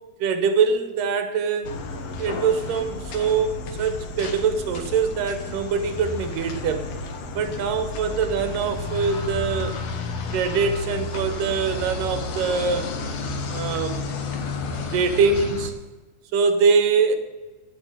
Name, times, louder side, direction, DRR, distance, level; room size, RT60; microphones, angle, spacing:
voice 1, 0.2-1.7 2.2-6.9 7.4-9.8 10.3-12.9 13.5-14.1 14.9-15.7 16.3-17.2, right 5 dB, 80° right, 7 dB, 2.7 m, -23 dB
sound 1, 1.6-15.7, left 3 dB, 60° left, 2.0 m, -32 dB
9.3 x 8.9 x 6.2 m, 1.2 s
omnidirectional pair, 3.8 m